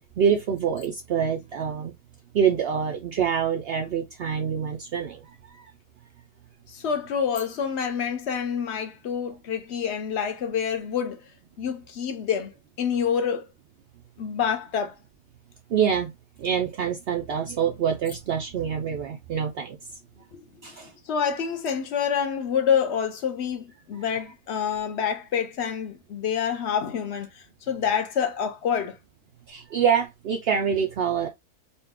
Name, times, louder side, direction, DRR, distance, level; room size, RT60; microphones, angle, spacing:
voice 1, 0.0-1.9 2.3-5.2 5.5-5.7 15.7-16.1 16.4-19.8 20.6-20.9 29.5-31.3, right 7 dB, 70° right, 0.5 m, -26 dB
voice 2, 6.7-11.3 11.6-13.5 14.2-14.9 20.3-29.0, left 7 dB, 55° left, 0.9 m, -27 dB
4.0 x 2.2 x 3.6 m
omnidirectional pair, 1.6 m